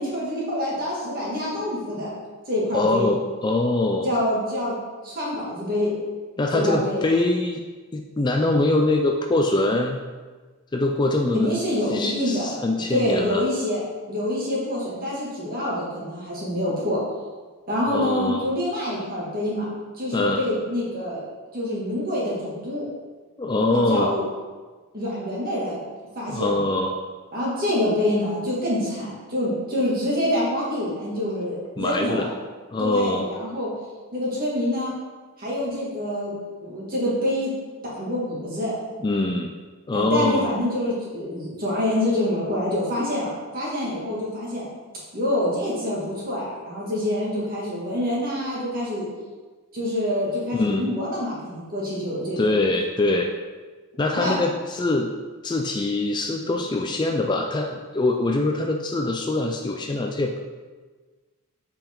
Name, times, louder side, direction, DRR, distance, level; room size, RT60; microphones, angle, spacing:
voice 1, 0.0-2.1 2.5-3.1 4.0-4.8 5.0-5.9 6.5-7.0 11.3-13.8 14.1-17.0 17.7-19.7 20.0-21.2 21.5-22.9 23.5-24.2 24.9-25.8 26.2-26.7 27.3-32.3 32.8-33.7 34.1-34.9 35.4-36.3 36.6-37.5 38.0-38.7 39.9-44.7 45.1-49.1 49.7-52.5 54.1-54.3, left 1 dB, 40° right, -6 dB, 2.2 m, -26 dB
voice 2, 2.7-4.1 6.4-7.7 7.9-10.0 10.7-11.6 11.9-13.4 17.9-18.5 20.1-20.5 23.4-24.1 26.3-27.0 31.8-32.3 32.7-33.3 39.0-39.5 39.9-40.5 50.5-50.9 52.4-53.3 54.0-55.1 55.4-60.4, left 2 dB, 20° left, 3 dB, 0.3 m, -23 dB
7.3 x 5.3 x 3.8 m, 1.4 s
head